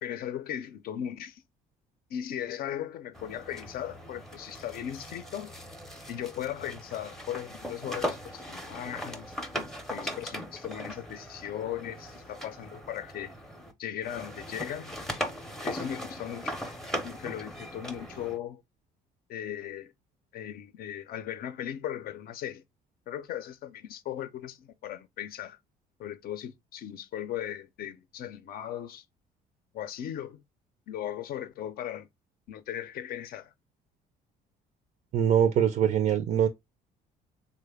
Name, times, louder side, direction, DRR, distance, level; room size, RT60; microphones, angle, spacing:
voice 1, 0.0-1.4 2.1-5.5 6.1-9.4 9.9-13.3 13.8-15.0 15.6-16.6 17.0-18.6 19.3-19.9 20.3-22.6 23.1-25.6 26.0-29.0 29.7-30.4 30.9-32.1 32.5-33.5, left 10 dB, 60° left, 0.5 m, -37 dB
sound 1, 3.1-13.7 14.0-18.4, equal, ahead, 0.5 m, -39 dB
voice 2, 35.1-36.5, right 9 dB, 50° right, 0.4 m, -23 dB
3.2 x 2.1 x 3.3 m
cardioid pair, 110°, 17 cm